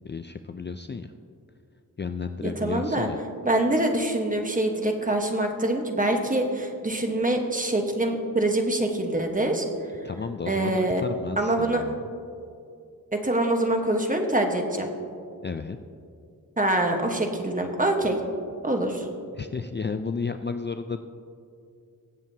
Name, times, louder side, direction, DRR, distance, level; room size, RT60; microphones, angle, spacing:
voice 1, 0.0-1.1 2.0-3.2 10.0-12.0 15.4-15.8 19.3-21.0, left 5 dB, 30° left, 8 dB, 0.4 m, -32 dB
voice 2, 2.4-3.1 3.4-9.6 10.5-11.0 11.4-11.8 13.1-14.9 16.6-18.2 18.6-19.1, right 1 dB, 25° right, 3 dB, 1.2 m, -25 dB
22.5 x 7.5 x 2.8 m, 2.4 s
wide cardioid pair, 75°, 35 cm